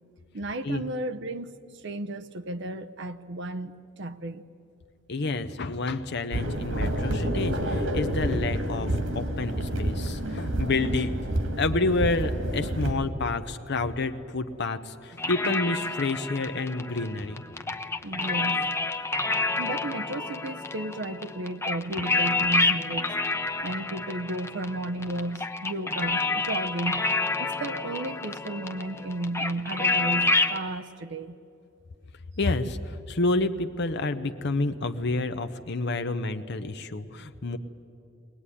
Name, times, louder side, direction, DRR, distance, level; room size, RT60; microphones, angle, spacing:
voice 1, 0.3-4.5 18.0-18.7 19.6-23.1 23.6-27.0 27.4-31.4, right 1 dB, 60° right, 8 dB, 0.8 m, -33 dB
voice 2, 5.1-11.2 11.6-17.4 22.2-22.3 32.4-37.6, left 3 dB, 55° left, 9 dB, 0.8 m, -29 dB
sound 1, 6.3-12.9, right 1 dB, 75° right, 2.9 m, -28 dB
sound 2, 15.2-30.6, left 3 dB, 15° left, 0.8 m, -29 dB
22.0 x 18.5 x 9.9 m, 2.6 s
head